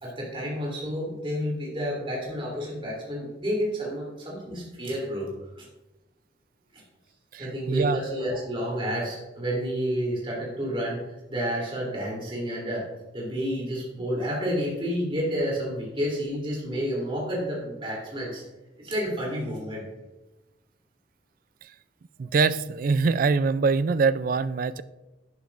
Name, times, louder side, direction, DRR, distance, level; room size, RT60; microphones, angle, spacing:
voice 1, 0.0-5.3 5.6-5.7 6.7-6.8 7.4-11.0 11.3-12.9 13.1-18.4 18.8-19.9 22.2-22.3, equal, 30° right, -3 dB, 3.1 m, -30 dB
voice 2, 7.3-8.0 21.6-21.7 22.2-24.8, right 4 dB, 50° right, 15 dB, 0.3 m, -24 dB
11.5 x 8.5 x 2.5 m, 1.1 s
head